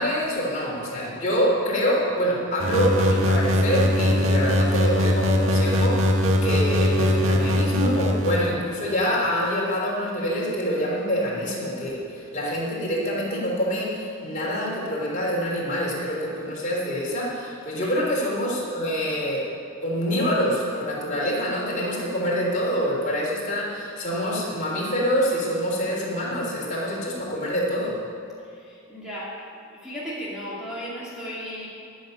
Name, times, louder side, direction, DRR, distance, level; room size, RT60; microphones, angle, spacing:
voice 1, 0.0-19.4 19.8-28.0, equal, 35° left, -4 dB, 3.5 m, -26 dB
sound 1, 2.6-8.5, left 1 dB, 70° right, 1.3 m, -21 dB
voice 2, 17.8-18.1 28.4-29.4 29.8-31.7, equal, 5° right, -8 dB, 2.5 m, -35 dB
14.0 x 7.2 x 9.9 m, 2.4 s
head